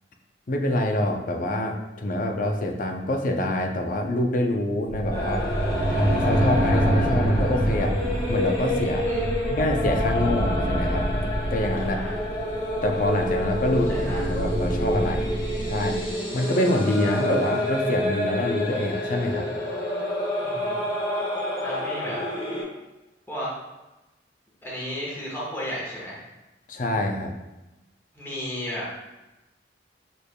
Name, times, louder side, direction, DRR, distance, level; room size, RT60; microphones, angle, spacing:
voice 1, 0.5-5.5 5.9-8.0 8.3-9.1 9.5-11.1 11.5-12.0 12.8-14.0 14.2-15.3 15.6-16.0 16.3-19.5 26.7-27.3, left 1 dB, 50° left, 3 dB, 0.5 m, -25 dB
sound 1, 4.9-16.1, right 1 dB, 60° right, 0.7 m, -27 dB
sound 2, 5.1-22.6, left 1 dB, 30° left, 1.3 m, -29 dB
voice 2, 9.0-9.6 11.8-12.2 13.9-14.4 20.4-20.8 21.6-22.2 23.3-23.5 24.6-26.3 28.1-28.9, equal, 15° left, -6 dB, 1.1 m, -34 dB
6.6 x 3.3 x 2.2 m, 1.0 s
head